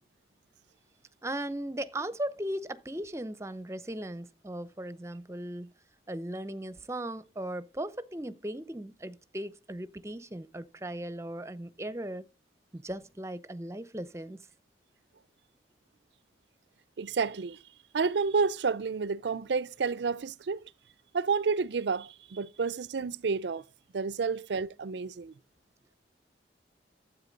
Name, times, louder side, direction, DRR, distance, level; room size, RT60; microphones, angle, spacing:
voice 1, 1.2-5.7 6.1-12.3 12.7-14.5, right 1 dB, 15° right, 0.7 m, -37 dB
voice 2, 17.0-17.6 17.9-20.6 21.1-23.6 23.9-25.3, right 5 dB, 80° right, 0.5 m, -30 dB
12.5 x 8.2 x 5.2 m
head